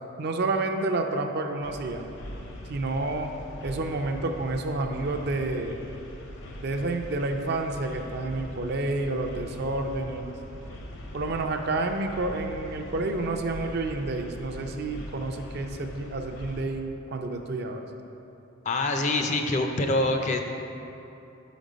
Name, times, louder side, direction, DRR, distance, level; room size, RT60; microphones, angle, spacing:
voice 1, 0.2-2.1 2.7-3.3 3.6-5.8 6.6-10.4 11.1-17.8, right 2 dB, 50° right, 5 dB, 0.4 m, -29 dB
sound 1, 1.6-16.6, equal, 60° left, 0.7 m, -41 dB
voice 2, 18.6-20.4, left 2 dB, 35° left, 4 dB, 0.4 m, -25 dB
6.0 x 5.1 x 5.1 m, 2.9 s
head